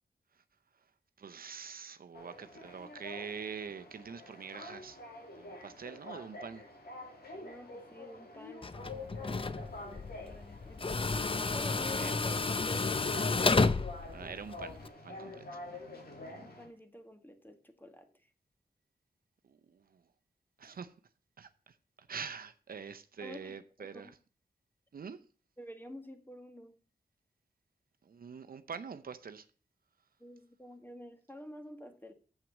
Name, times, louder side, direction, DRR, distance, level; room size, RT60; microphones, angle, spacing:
voice 1, 1.2-5.0 5.3-6.6 11.9-12.3 14.1-15.6 19.4-20.1 20.6-20.9 21.4-24.2 24.9-25.3 28.0-29.5, right 6 dB, 65° right, 0.7 m, -45 dB
sound 1, 2.1-16.7, left 2 dB, 75° left, 2.5 m, -48 dB
voice 2, 7.3-10.9 11.5-12.9 16.4-18.3 20.6-20.8 23.2-24.1 25.6-26.8 30.2-32.1, left 1 dB, 10° left, 1.5 m, -49 dB
Tools, 8.6-14.9, left 3 dB, 35° left, 0.6 m, -32 dB
7.5 x 5.8 x 7.2 m
cardioid pair, 45°, 16 cm